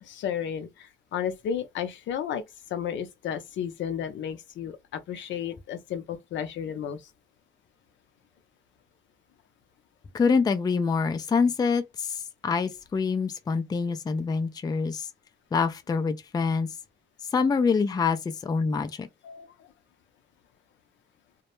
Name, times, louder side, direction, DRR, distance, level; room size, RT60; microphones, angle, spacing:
voice 1, 0.0-2.4 2.7-7.0 19.2-19.5, left 8 dB, 70° left, 0.5 m, -33 dB
voice 2, 10.1-15.1 15.5-16.7 17.3-19.1, left 5 dB, 20° left, 0.4 m, -26 dB
2.1 x 2.0 x 3.0 m
cardioid pair, 90°, 20 cm